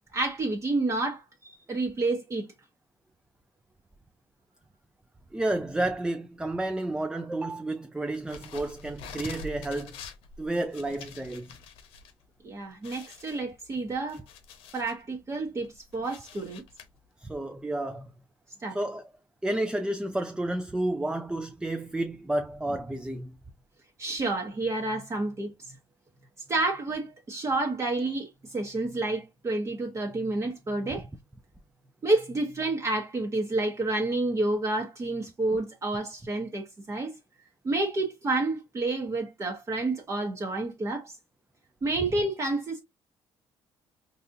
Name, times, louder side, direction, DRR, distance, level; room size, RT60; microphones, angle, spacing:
voice 1, 0.1-2.5 12.4-14.2 14.7-16.6 18.6-18.8 24.0-25.7 26.5-31.1 32.0-37.2 37.6-41.1 41.8-42.8, right 2 dB, 30° right, 1.0 m, -29 dB
voice 2, 5.3-9.9 10.4-11.6 17.2-18.1 18.7-19.0 19.4-23.4, right 1 dB, 10° right, 0.4 m, -31 dB
sound 1, 8.1-12.1 12.4-12.5 12.8-15.0 15.5-16.8, left 5 dB, 85° left, 0.8 m, -46 dB
4.0 x 2.8 x 2.5 m
cardioid pair, 95°, 9 cm